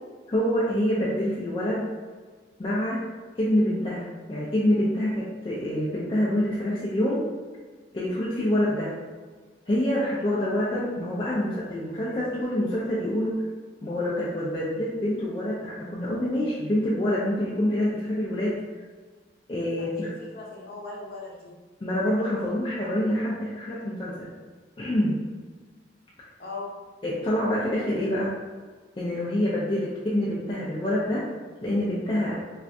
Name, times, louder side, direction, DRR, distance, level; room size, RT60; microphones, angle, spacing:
voice 1, 0.3-1.9 2.6-3.0 3.4-7.3 7.9-9.0 9.7-13.4 13.8-18.6 19.5-20.1 21.8-24.3 24.8-25.2 27.0-28.3 29.0-31.3 31.6-32.4, left 1 dB, 25° left, -7 dB, 0.4 m, -26 dB
voice 2, 19.8-21.5 26.4-26.7, left 3 dB, 50° left, -4 dB, 0.8 m, -39 dB
2.5 x 2.5 x 3.3 m, 1.4 s
head